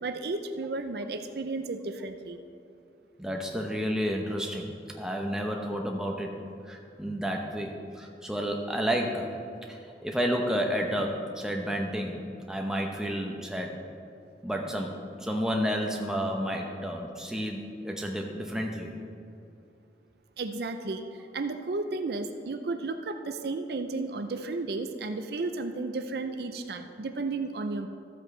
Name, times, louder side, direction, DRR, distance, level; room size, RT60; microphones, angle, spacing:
voice 1, 0.0-2.4 20.4-21.0 21.3-27.9, right 3 dB, 65° right, 7 dB, 0.5 m, -33 dB
voice 2, 3.2-6.3 6.7-9.3 9.7-12.2 12.5-13.8 14.4-18.9, equal, 5° right, 1 dB, 0.8 m, -31 dB
14.0 x 7.9 x 3.2 m, 2.6 s
head